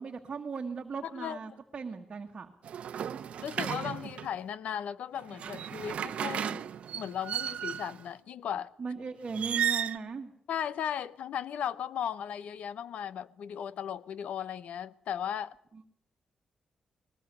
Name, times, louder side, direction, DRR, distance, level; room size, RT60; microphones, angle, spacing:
voice 1, 0.0-2.5 8.8-10.3 15.7-15.9, right 5 dB, 35° right, 1.6 m, -38 dB
sound 1, 2.6-4.4 5.2-8.0 9.3-10.0, right 9 dB, 60° right, 0.8 m, -34 dB
voice 2, 3.4-6.6 6.9-8.7 10.5-15.5, left 9 dB, 75° left, 0.8 m, -36 dB
20.5 x 19.5 x 8.2 m
wide cardioid pair, 140°, 2 cm